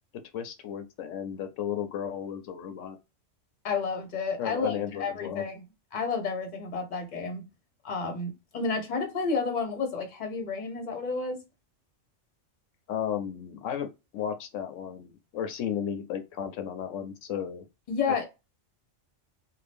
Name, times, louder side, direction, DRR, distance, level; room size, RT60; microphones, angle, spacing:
voice 1, 0.3-3.0 4.4-5.4 12.9-13.9 14.1-17.6, left 9 dB, 85° left, 0.9 m, -34 dB
voice 2, 3.6-5.6 5.9-7.4 7.8-11.4 17.9-18.2, left 4 dB, 40° left, 0.9 m, -31 dB
2.6 x 2.3 x 3.4 m
omnidirectional pair, 1.3 m